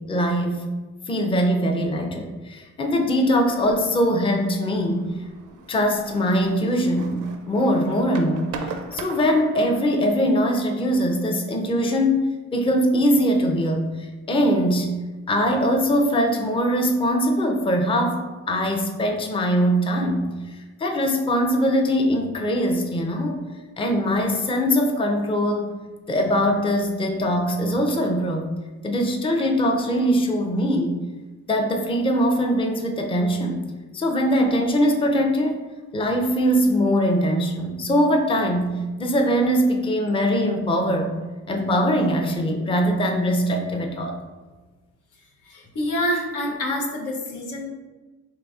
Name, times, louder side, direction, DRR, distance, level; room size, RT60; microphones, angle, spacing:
voice 1, 0.1-0.6 1.1-5.1 5.7-14.9 15.3-20.3 20.8-23.4 23.8-25.8 26.1-28.5 28.8-31.0 31.5-33.6 33.9-35.6 35.9-41.1 41.5-44.2, equal, 20° left, 3 dB, 0.5 m, -22 dB
sound 1, 3.5-9.8, right 5 dB, 85° right, 0.5 m, -40 dB
voice 2, 45.5-47.7, left 1 dB, 85° left, -1 dB, 0.8 m, -27 dB
3.9 x 3.2 x 2.3 m, 1.2 s
cardioid pair, 90°, 30 cm